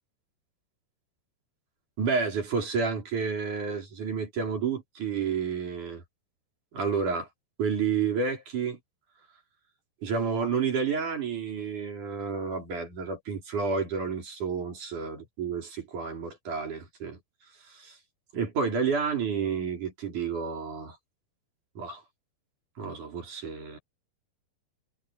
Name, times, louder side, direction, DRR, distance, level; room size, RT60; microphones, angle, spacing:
voice 1, 2.0-6.0 6.7-7.3 7.6-8.8 10.0-17.2 17.7-18.0 18.3-21.0 21.8-22.0 22.8-23.8, right 5 dB, 45° right, 5.3 m, -30 dB
omnidirectional pair, 5.2 m